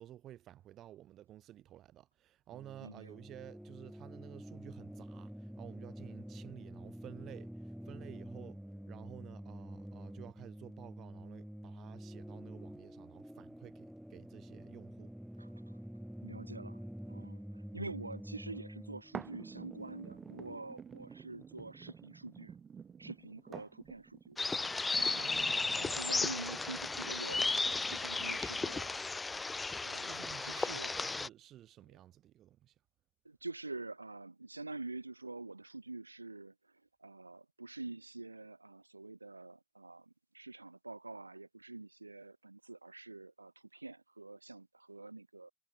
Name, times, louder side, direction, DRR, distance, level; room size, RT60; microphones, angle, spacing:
voice 1, 0.0-15.1 25.2-26.0 30.0-32.7, right 12 dB, 50° right, 4.6 m, -53 dB
sound 1, 2.5-20.6, equal, ahead, 6.9 m, -48 dB
voice 2, 2.8-3.1 15.4-15.5 16.2-16.8 17.1-22.5 23.0-24.4 25.0-25.4 25.8-28.9 29.8-30.9 33.2-36.5 37.0-45.5, right 3 dB, 85° right, 4.1 m, -46 dB
sound 2, 19.1-29.1 29.7-29.8, right 7 dB, 35° right, 2.7 m, -51 dB
sound 3, 24.4-31.3, left 3 dB, 20° left, 2.1 m, -34 dB
figure-of-eight pair, 55°, 0 cm